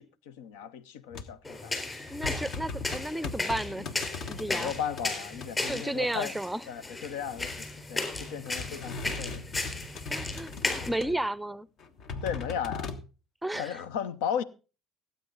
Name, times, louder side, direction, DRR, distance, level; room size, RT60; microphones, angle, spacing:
voice 1, 0.0-1.8 4.5-6.4 6.7-9.4 11.0-11.1 12.2-12.9 13.5-14.4, left 8 dB, 85° left, 0.7 m, -35 dB
bed squeaks many, 1.1-1.5 1.8-5.1 5.3-5.7 6.8-7.9 8.1-11.3 11.8-13.0, left 4 dB, 60° left, 1.3 m, -39 dB
sound 1, 1.4-10.9, left 2 dB, 20° left, 3.9 m, -35 dB
voice 2, 2.1-3.9 4.3-4.7 5.6-6.6 10.1-10.5 10.9-11.7 13.4-13.8, right 1 dB, 5° right, 0.5 m, -33 dB
17.0 x 8.6 x 3.9 m
supercardioid pair, 80°, 0 cm